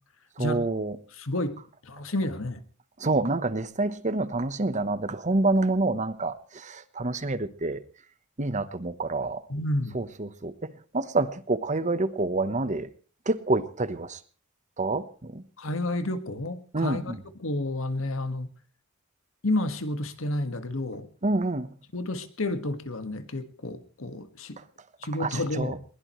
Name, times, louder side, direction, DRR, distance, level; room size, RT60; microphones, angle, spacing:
voice 1, 0.4-1.0 3.0-7.8 8.4-9.4 9.9-10.5 10.9-12.9 13.3-14.2 14.8-15.4 16.7-17.2 21.2-21.7 25.2-25.7, right 2 dB, 35° right, 13 dB, 1.1 m, -27 dB
voice 2, 1.1-1.5 1.8-2.6 9.5-10.0 15.6-18.5 19.4-21.1 21.9-24.6 25.0-25.8, left 1 dB, 70° left, 9 dB, 1.7 m, -30 dB
21.5 x 20.5 x 3.2 m, 0.38 s
head